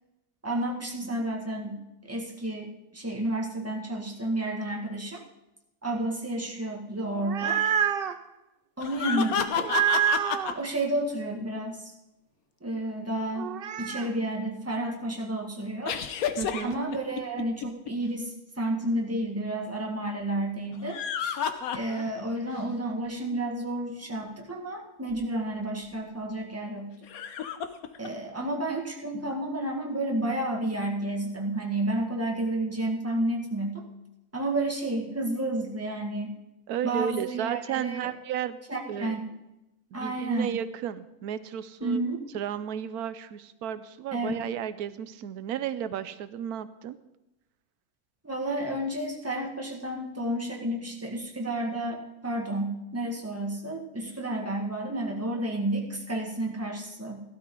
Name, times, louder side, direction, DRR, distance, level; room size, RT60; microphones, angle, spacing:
voice 1, 0.4-5.2 5.8-7.6 8.8-9.7 10.5-11.9 12.6-13.5 13.8-16.0 16.6-21.4 21.7-26.9 28.0-33.8 34.3-36.3 36.8-38.1 38.7-39.2 39.9-40.5 41.8-42.3 44.1-44.3 48.2-57.2, right 1 dB, 10° right, 0 dB, 1.6 m, -31 dB
sound 1, 7.0-8.2 9.6-10.5 13.4-14.1, right 9 dB, 55° right, 0.6 m, -27 dB
sound 2, 8.8-10.5 15.9-17.9 20.7-22.3 22.7-22.8 25.1-25.2 27.0-28.1, left 7 dB, 75° left, 1.3 m, -30 dB
voice 2, 16.4-16.8 36.7-38.6 38.9-39.2 39.9-42.0 42.3-47.0, right 9 dB, 90° right, 13 dB, 1.1 m, -33 dB
16.0 x 12.5 x 3.8 m, 0.93 s
omnidirectional pair, 1.6 m